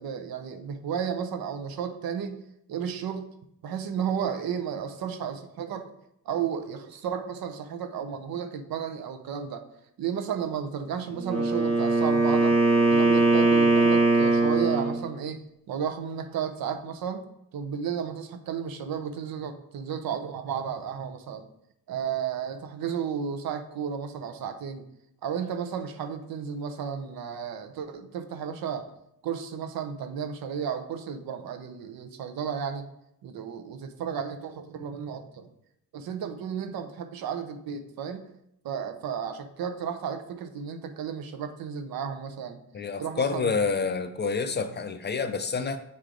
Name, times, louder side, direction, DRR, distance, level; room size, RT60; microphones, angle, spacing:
voice 1, 0.0-2.4 2.7-3.3 3.6-5.9 6.2-9.7 10.0-12.6 12.9-15.4 15.7-17.3 17.5-21.4 21.9-24.8 25.2-28.9 29.2-32.9 33.2-35.5 35.9-38.2 38.6-42.6 43.0-43.8, right 7 dB, 80° right, 7 dB, 0.8 m, -33 dB
Wind instrument woodwind instrument, 11.1-15.0, right 3 dB, 45° right, 1.4 m, -21 dB
voice 2, 42.7-45.8, left 5 dB, 30° left, 9 dB, 0.4 m, -28 dB
8.4 x 3.2 x 3.8 m, 0.79 s
cardioid pair, 120°, 35 cm